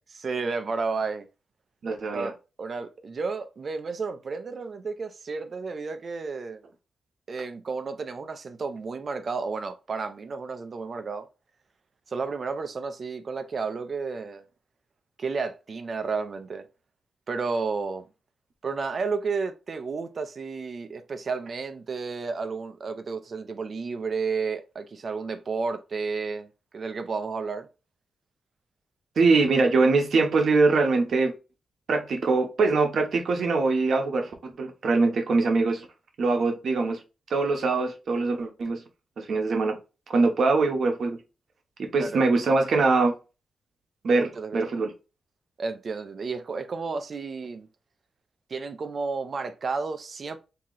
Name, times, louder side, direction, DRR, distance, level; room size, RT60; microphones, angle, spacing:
voice 1, 0.2-1.3 2.1-6.6 7.3-11.3 12.1-14.4 15.2-16.7 17.3-18.0 18.6-26.5 26.7-27.7 42.0-42.2 44.4-44.7 45.6-47.7 48.5-50.4, right 4 dB, 40° right, 0.5 m, -32 dB
voice 2, 1.8-2.3 29.2-31.3 31.9-35.9 36.2-37.0 37.3-38.8 39.2-39.8 40.1-41.2 41.8-43.1 44.0-44.9, right 3 dB, 55° right, 0.9 m, -23 dB
3.0 x 2.8 x 3.8 m
wide cardioid pair, 155°, 0 cm